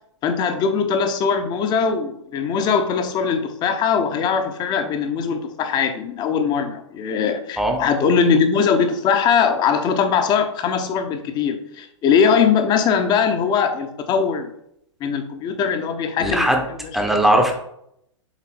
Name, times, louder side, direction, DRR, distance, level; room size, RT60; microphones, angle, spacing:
voice 1, 0.2-14.5 15.0-16.8, left 6 dB, 25° left, 7 dB, 0.9 m, -21 dB
voice 2, 16.2-16.6 16.9-17.5, right 1 dB, ahead, 2 dB, 0.9 m, -18 dB
7.3 x 4.2 x 4.3 m, 0.74 s
figure-of-eight pair, 105°, 16 cm